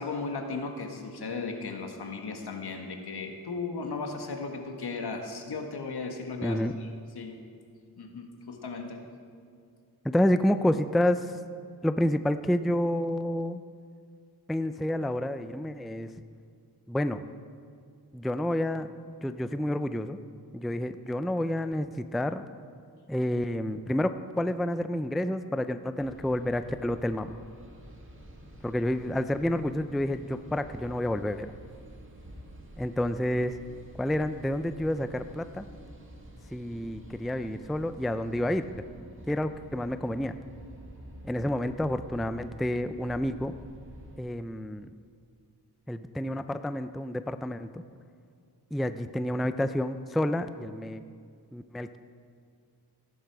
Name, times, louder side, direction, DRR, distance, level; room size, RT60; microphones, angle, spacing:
voice 1, 0.0-6.9 7.1-7.4 8.0-9.0, left 4 dB, 70° left, 3 dB, 1.6 m, -36 dB
voice 2, 6.4-6.8 10.0-11.4 11.8-13.6 14.5-16.1 16.9-17.3 18.1-18.9 19.2-20.2 20.5-22.4 23.1-27.4 28.6-31.5 32.8-33.6 34.0-35.7 36.5-38.6 39.3-40.4 41.2-43.6 44.2-44.9 45.9-47.8 48.7-51.0 51.5-52.0, left 1 dB, ahead, 10 dB, 0.4 m, -29 dB
sound 1, 26.0-44.2, equal, 30° right, 2.1 m, -49 dB
15.5 x 11.0 x 4.7 m, 2.2 s
cardioid pair, 75°, 40 cm